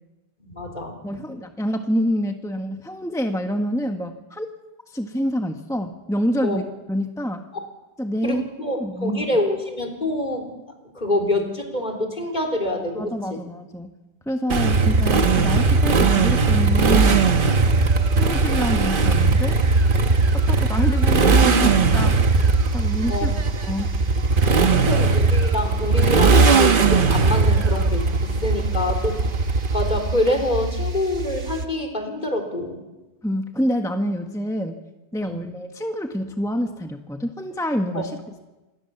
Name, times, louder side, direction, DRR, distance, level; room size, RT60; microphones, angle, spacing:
voice 1, 0.4-1.2 6.4-6.6 7.5-7.6 8.2-10.5 10.9-13.1 23.1-23.3 24.5-29.2 29.7-32.8 35.2-35.4 37.9-38.0, left 1 dB, 40° left, 3 dB, 4.0 m, -26 dB
voice 2, 1.0-4.5 4.9-6.6 6.9-7.5 8.0-8.4 8.8-9.2 12.9-13.9 14.3-17.3 18.1-19.6 20.3-22.2 22.7-23.3 23.7-23.9 33.2-34.8 35.1-38.2, equal, 5° left, 5 dB, 1.2 m, -26 dB
Motorcycle, 14.5-30.3, right 4 dB, 50° right, 1.3 m, -18 dB
sound 1, 16.7-31.7, right 2 dB, 90° right, 1.8 m, -30 dB
27.0 x 20.5 x 7.1 m, 1.1 s
omnidirectional pair, 1.1 m